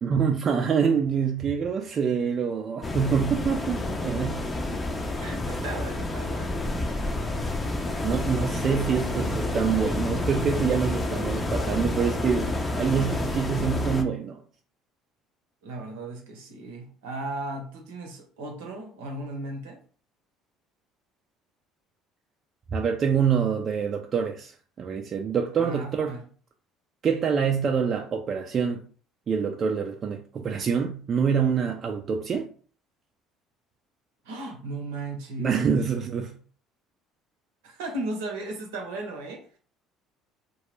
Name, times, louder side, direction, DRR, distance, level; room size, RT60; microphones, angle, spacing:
voice 1, 0.0-4.4 8.0-14.4 22.7-24.5 24.8-26.2 27.0-28.8 29.3-32.5 35.4-36.3, right 6 dB, 45° right, 0.3 m, -26 dB
sound 1, 2.8-14.0, left 2 dB, 25° left, 0.5 m, -29 dB
voice 2, 5.2-6.7 15.6-19.8 25.6-26.2 34.2-35.7 37.6-39.6, right 2 dB, 80° right, 0.7 m, -36 dB
2.2 x 2.0 x 3.0 m
hypercardioid pair, 65°, 0 cm